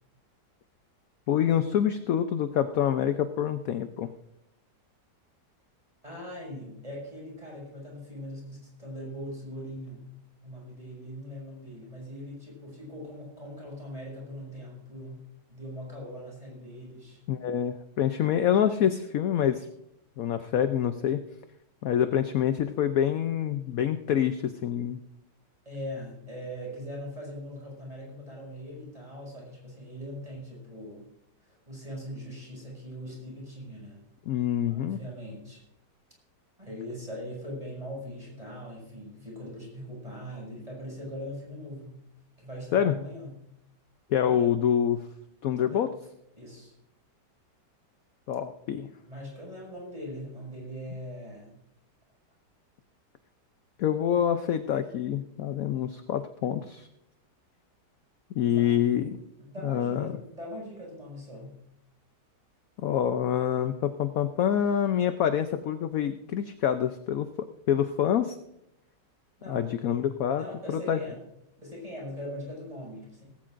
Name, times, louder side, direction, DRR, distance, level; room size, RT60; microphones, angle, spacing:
voice 1, 1.3-4.1 17.3-19.7 20.2-21.2 21.8-25.0 34.3-35.0 42.7-42.9 44.1-45.1 45.4-45.9 48.3-48.9 53.8-56.9 58.4-59.2 59.6-60.1 62.8-67.3 67.7-68.4 69.5-71.0, left 9 dB, 65° left, 9 dB, 0.9 m, -26 dB
voice 2, 6.0-10.0 10.4-15.2 15.5-17.2 25.7-31.1 31.4-34.0 34.7-35.6 36.6-42.0 42.4-43.3 44.2-44.5 45.6-45.8 46.4-46.7 49.0-51.6 58.4-58.8 59.4-61.5 69.4-69.8 70.4-71.2 71.6-73.2, equal, 20° right, -3 dB, 6.0 m, -41 dB
18.0 x 16.0 x 2.5 m, 0.82 s
omnidirectional pair, 1.9 m